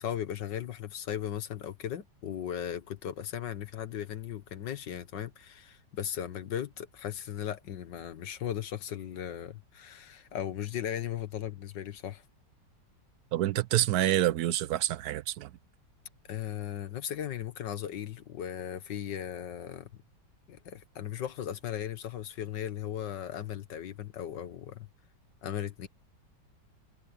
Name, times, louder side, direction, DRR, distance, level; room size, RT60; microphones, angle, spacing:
voice 1, 0.0-12.2 16.3-20.0 20.5-24.9 25.4-25.9, left 10 dB, 80° left, 1.9 m, -37 dB
voice 2, 13.3-15.5, right 13 dB, 70° right, 1.0 m, -27 dB
omnidirectional pair, 1.9 m